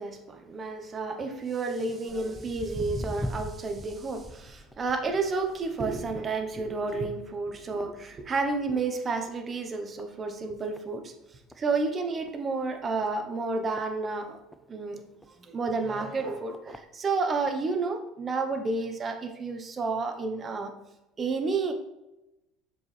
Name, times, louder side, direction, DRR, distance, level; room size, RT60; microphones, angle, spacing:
voice 1, 0.0-11.1 11.6-14.4 14.7-15.0 15.4-20.7 21.2-21.7, right 3 dB, 30° right, 5 dB, 1.0 m, -31 dB
Walk footsteps, 2.1-8.8 9.1-9.4 10.0-10.1 10.8-10.9 11.2-11.3 11.5-11.6 12.2-12.4 13.0-14.6 15.2-15.3 16.0-16.1 16.5-16.8 17.5-17.6, equal, ahead, 0.5 m, -41 dB
6.8 x 4.7 x 3.4 m, 0.93 s
supercardioid pair, 105°, 0 cm